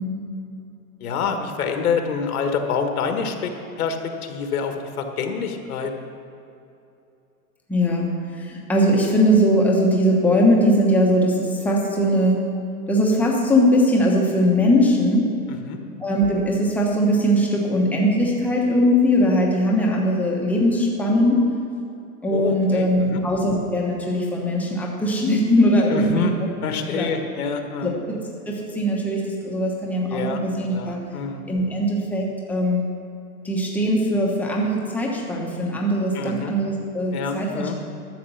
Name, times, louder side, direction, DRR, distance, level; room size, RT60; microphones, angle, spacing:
voice 1, 1.0-5.9 15.5-15.8 22.3-23.2 25.9-26.3 26.6-27.9 30.1-30.4 30.7-31.4 36.1-36.5 37.1-37.8, left 5 dB, 70° left, 5 dB, 1.6 m, -27 dB
voice 2, 7.7-8.1 8.4-12.4 12.9-15.3 16.0-21.5 22.2-26.3 26.9-27.1 27.8-28.2 28.5-31.0 31.5-32.8 33.4-37.8, equal, 5° left, -2 dB, 1.1 m, -20 dB
12.5 x 6.8 x 7.0 m, 2.8 s
hypercardioid pair, 160°, 45 cm